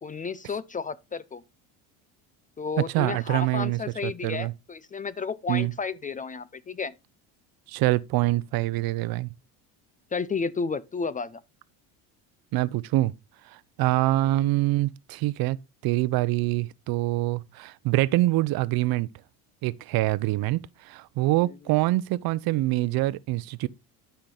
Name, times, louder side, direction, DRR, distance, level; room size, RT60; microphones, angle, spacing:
voice 1, 0.0-1.4 2.6-6.9 10.1-11.4 14.0-14.3, left 5 dB, 20° left, 0.4 m, -32 dB
voice 2, 2.8-4.5 5.5-5.7 7.7-9.3 12.5-13.1 13.5-15.6 15.8-19.1 19.6-23.7, right 18 dB, 55° right, 0.7 m, -25 dB
12.0 x 5.8 x 3.8 m
supercardioid pair, 100°, 42 cm